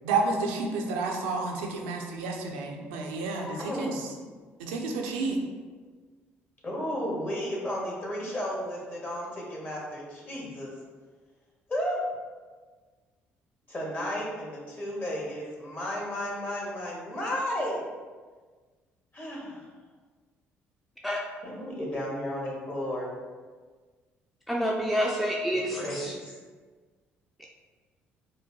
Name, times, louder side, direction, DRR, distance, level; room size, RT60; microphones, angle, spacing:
voice 1, 0.0-4.0 4.6-5.4, right 3 dB, 90° right, 1 dB, 0.4 m, -30 dB
voice 2, 3.4-4.1 6.6-10.7 11.7-12.0 13.7-17.8 19.1-19.6 21.4-23.1 25.5-26.3, equal, 35° left, -3 dB, 1.3 m, -33 dB
voice 3, 24.5-26.1, equal, ahead, -2 dB, 0.4 m, -28 dB
4.6 x 2.2 x 2.8 m, 1.4 s
hypercardioid pair, 60°, 5 cm